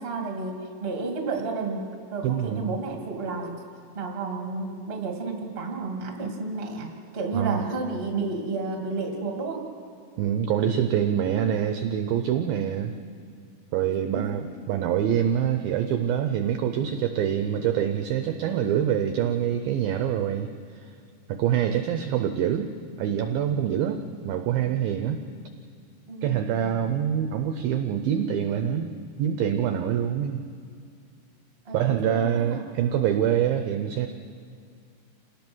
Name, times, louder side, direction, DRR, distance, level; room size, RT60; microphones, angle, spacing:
voice 1, 0.0-3.6 3.9-9.7 13.9-14.2 26.1-26.8 31.6-32.6, right 3 dB, 25° right, 2 dB, 1.2 m, -32 dB
voice 2, 2.2-2.7 7.3-7.7 10.2-12.9 13.7-20.5 20.7-20.9 21.3-22.7 23.0-25.2 26.2-28.9 29.2-30.4 31.7-34.1, right 9 dB, 80° right, 7 dB, 2.1 m, -25 dB
28.0 x 18.5 x 6.2 m, 2.3 s
omnidirectional pair, 5.2 m